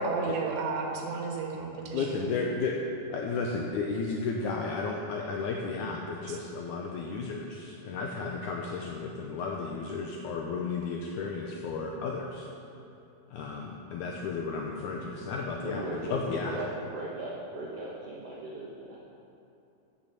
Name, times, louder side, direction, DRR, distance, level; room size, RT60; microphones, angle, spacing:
voice 1, 0.0-2.3 6.3-6.4, right 3 dB, 85° right, 0 dB, 3.3 m, -32 dB
voice 2, 1.9-2.8 3.1-12.5 13.3-16.6, left 4 dB, 80° left, 0 dB, 1.8 m, -33 dB
voice 3, 15.6-19.0, right 2 dB, 65° right, -4 dB, 1.5 m, -38 dB
9.1 x 8.7 x 7.0 m, 2.8 s
omnidirectional pair, 4.3 m